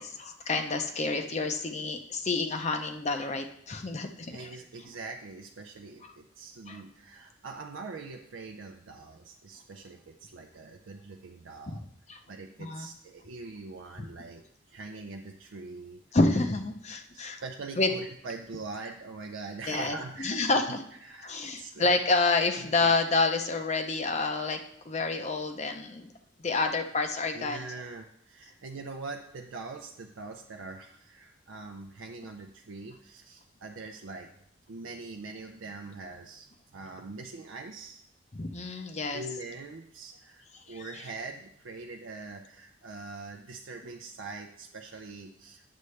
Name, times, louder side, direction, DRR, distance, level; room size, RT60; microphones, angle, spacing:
voice 1, 0.0-4.5 6.7-6.8 11.7-11.8 12.1-12.2 12.6-12.9 14.0-14.1 16.1-17.4 17.8-17.9 19.7-20.8 21.2-24.6 24.9-26.1 26.4-27.6 38.3-39.2 40.7-40.8, left 3 dB, 35° left, 6 dB, 0.6 m, -28 dB
voice 2, 4.3-11.8 12.3-14.4 14.7-16.0 17.1-20.8 21.0-22.0 22.6-22.9 26.1-26.3 27.3-34.3 34.7-38.0 38.7-45.6, right 3 dB, 80° right, 3 dB, 0.5 m, -43 dB
9.5 x 6.7 x 3.2 m, 0.72 s
head